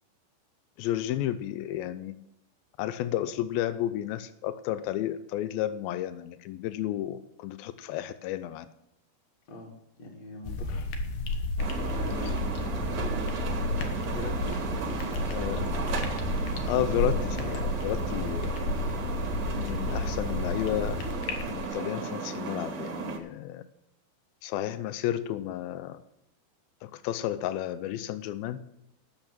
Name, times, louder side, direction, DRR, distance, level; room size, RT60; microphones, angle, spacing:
voice 1, 0.8-2.2 2.8-8.7 12.2-12.3 15.3-15.7 16.7-18.6 19.6-21.0 21.5-23.6 24.4-26.0 26.8-28.6, left 12 dB, 90° left, 12 dB, 2.1 m, -32 dB
voice 2, 10.0-11.1 11.8-12.4 14.1-15.0, left 2 dB, 50° left, -1 dB, 2.4 m, -41 dB
sound 1, 10.4-21.7, left 2 dB, 70° left, 2.8 m, -31 dB
sound 2, 11.6-23.2, right 5 dB, 60° right, 1.4 m, -35 dB
11.5 x 6.8 x 7.3 m, 0.84 s
omnidirectional pair, 4.9 m